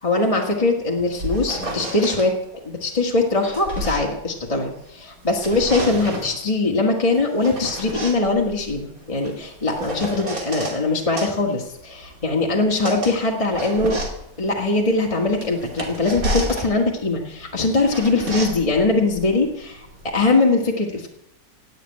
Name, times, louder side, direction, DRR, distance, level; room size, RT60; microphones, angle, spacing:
voice 1, 0.0-2.3 2.6-14.0 14.4-19.9 20.1-21.1, left 3 dB, 20° left, 0 dB, 1.7 m, -21 dB
sound 1, 0.9-2.3 3.1-4.9 5.2-6.4 7.1-10.8 11.2-20.3, right 1 dB, 55° right, 3.3 m, -31 dB
18.0 x 6.9 x 9.6 m, 0.80 s
omnidirectional pair, 1.8 m